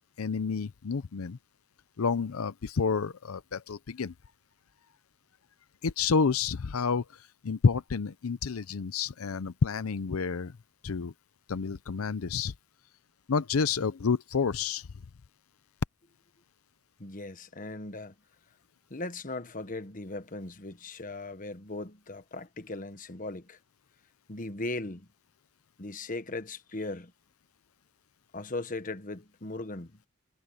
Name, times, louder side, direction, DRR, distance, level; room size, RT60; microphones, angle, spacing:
voice 1, 0.2-1.4 2.0-4.1 5.8-10.6 10.8-11.1 11.5-12.5 13.3-14.9, left 5 dB, 90° left, 0.6 m, -29 dB
voice 2, 17.0-18.2 18.9-23.6 24.3-25.1 25.8-27.1 28.3-30.0, left 2 dB, 40° left, 1.3 m, -38 dB
head